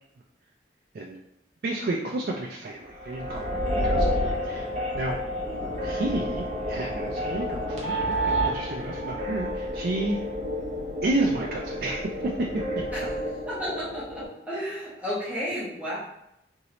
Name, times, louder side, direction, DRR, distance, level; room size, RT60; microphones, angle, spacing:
voice 1, 1.6-5.2 5.8-10.2 11.0-12.5 13.0-13.1, right 2 dB, 55° right, -2 dB, 0.3 m, -31 dB
sound 1, 2.9-14.3, equal, 40° right, 0.7 m, -30 dB
voice 2, 13.5-16.0, equal, 10° right, -10 dB, 0.9 m, -33 dB
3.0 x 2.7 x 2.8 m, 0.82 s
head